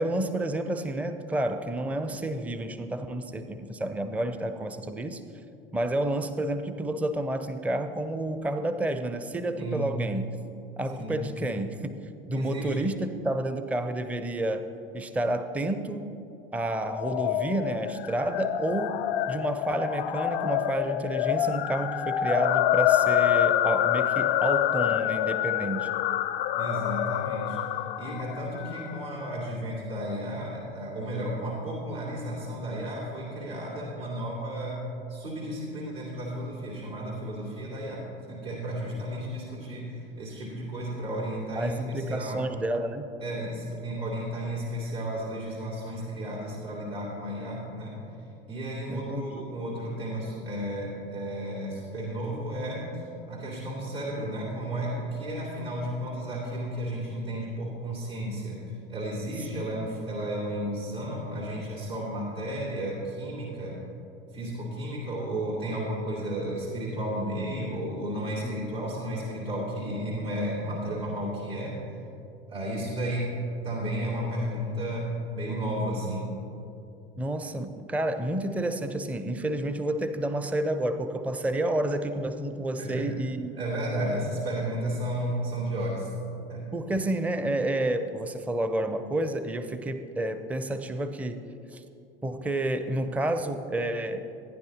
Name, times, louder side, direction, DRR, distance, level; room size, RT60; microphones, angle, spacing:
voice 1, 0.0-5.2 5.7-10.4 10.8-14.7 14.9-16.1 16.5-19.0 19.3-25.9 41.6-43.1 48.9-49.4 59.5-59.7 68.4-68.7 77.2-83.5 86.7-91.4 91.7-91.8 92.2-94.2, right 1 dB, 5° right, 9 dB, 0.4 m, -30 dB
voice 2, 9.6-9.9 10.9-11.3 12.3-12.9 26.6-27.6 27.9-42.5 43.2-48.0 48.5-52.9 53.3-58.6 58.9-63.8 64.3-71.8 72.5-73.4 73.6-76.3 82.8-83.1 83.6-86.1 86.5-86.7, right 1 dB, 85° right, -8 dB, 2.6 m, -33 dB
sound 1, 16.7-29.1, left 11 dB, 70° left, 0.5 m, -27 dB
15.0 x 9.9 x 2.8 m, 2.7 s
hypercardioid pair, 80°, 30 cm